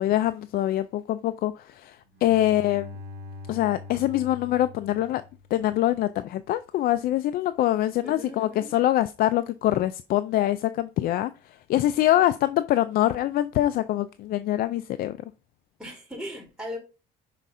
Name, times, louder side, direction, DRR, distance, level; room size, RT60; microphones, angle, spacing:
voice 1, 0.0-2.9 3.5-5.2 5.5-11.3 11.7-15.2, left 13 dB, 60° left, 0.4 m, -24 dB
Bowed string instrument, 2.1-5.9, left 3 dB, 65° right, 2.2 m, -43 dB
voice 2, 8.0-8.7 15.8-16.8, left 1 dB, 5° right, 2.7 m, -39 dB
5.7 x 3.6 x 5.3 m
cardioid pair, 130°, 18 cm